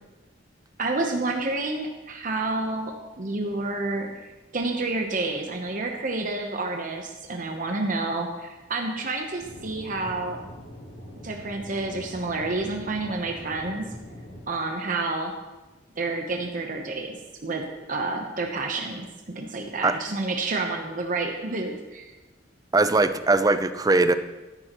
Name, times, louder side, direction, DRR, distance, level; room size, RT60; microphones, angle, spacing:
voice 1, 0.8-10.4 11.2-13.9 14.5-15.3 16.0-22.1, right 3 dB, 45° right, 2 dB, 1.0 m, -29 dB
Aircraft / Engine, 9.4-14.4, equal, 75° left, 2.7 m, -43 dB
voice 2, 22.7-24.1, right 3 dB, 20° right, 11 dB, 0.5 m, -20 dB
13.0 x 11.0 x 3.1 m, 1.1 s
head